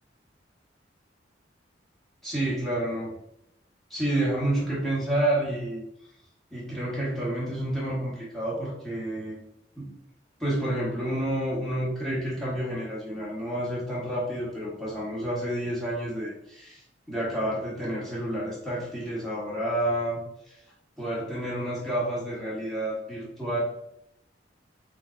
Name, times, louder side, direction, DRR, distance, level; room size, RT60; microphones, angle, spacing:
voice 1, 2.2-3.1 3.9-5.8 6.5-9.4 9.7-9.9 10.4-16.8 17.1-20.6 21.0-23.6, right 1 dB, ahead, -7 dB, 1.1 m, -29 dB
3.4 x 3.2 x 2.5 m, 0.78 s
head